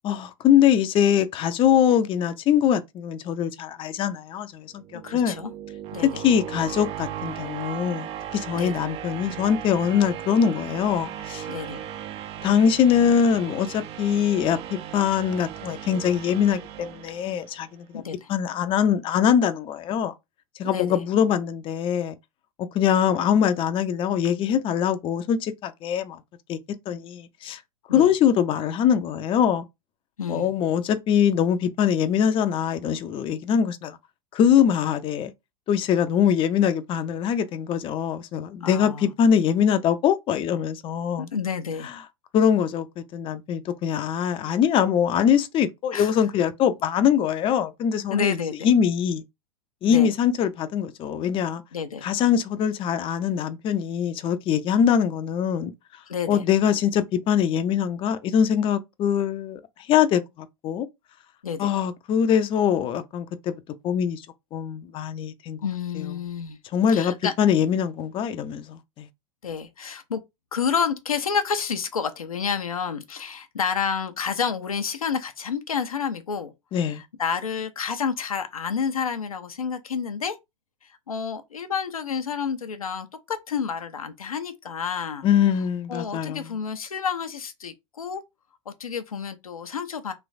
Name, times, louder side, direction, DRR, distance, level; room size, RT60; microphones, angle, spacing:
voice 1, 0.0-5.4 6.0-11.5 12.4-18.0 18.3-20.1 20.6-22.1 22.6-26.2 26.5-26.6 26.9-27.6 27.9-29.7 30.3-34.0 34.3-35.3 35.7-41.3 42.3-48.4 48.6-49.2 49.8-51.6 52.0-55.7 56.3-59.6 59.9-60.2 60.6-60.9 61.6-64.2 64.5-65.6 65.9-66.1 66.7-69.1 76.7-77.0 85.2-86.5, left 8 dB, 30° left, 0.5 m, -23 dB
sound 1, 4.7-17.7, right 10 dB, 35° right, 0.4 m, -37 dB
voice 2, 5.0-5.5 5.9-6.2 8.5-8.8 11.5-11.8 17.9-18.3 20.6-21.0 27.9-28.1 30.2-30.5 38.6-39.1 41.2-41.9 45.9-46.1 48.1-48.7 49.9-50.1 51.7-52.1 56.1-56.4 61.4-61.7 65.6-66.6 66.9-67.3 69.4-70.2 70.5-76.5 76.9-80.4 81.1-85.3 85.9-88.2 88.7-90.1, left 6 dB, 90° left, 0.5 m, -29 dB
3.2 x 3.0 x 2.5 m
hypercardioid pair, 90°, 18 cm